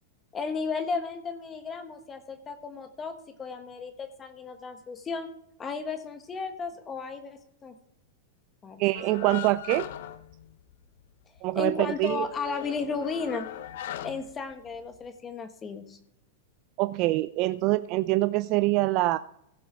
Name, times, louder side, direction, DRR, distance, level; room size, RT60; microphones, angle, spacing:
voice 1, 0.3-5.3 5.6-7.7 8.6-8.8 11.5-13.5 14.0-16.0, left 4 dB, 25° left, 8 dB, 1.3 m, -34 dB
voice 2, 8.8-9.9 11.4-12.3 16.8-19.2, right 18 dB, 50° right, 13 dB, 0.4 m, -25 dB
sound 1, 8.9-11.1 11.4-11.5 11.8-15.1, left 12 dB, 70° left, 0.8 m, -40 dB
15.5 x 6.1 x 4.8 m, 0.76 s
hypercardioid pair, 120°, 0 cm